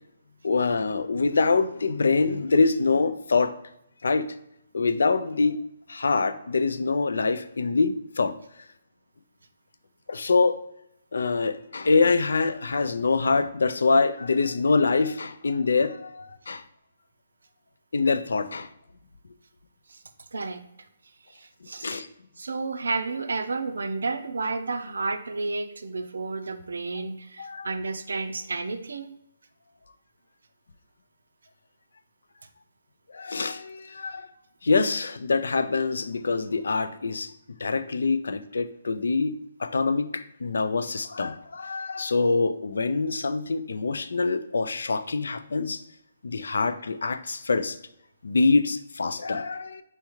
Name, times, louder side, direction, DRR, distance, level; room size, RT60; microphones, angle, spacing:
voice 1, 0.4-3.5 4.0-4.3 4.7-5.6 5.9-8.3 10.1-10.6 11.1-16.6 17.9-18.7 21.8-22.1 27.4-27.7 33.1-34.3 34.6-37.3 37.6-39.3 39.6-45.8 46.2-47.8 48.2-49.8, left 4 dB, 80° left, 12 dB, 0.3 m, -25 dB
voice 2, 20.3-20.6 21.3-22.1 22.4-29.1, right 3 dB, 85° right, 9 dB, 0.5 m, -31 dB
4.4 x 3.5 x 3.0 m, 0.79 s
hypercardioid pair, 155°, 0 cm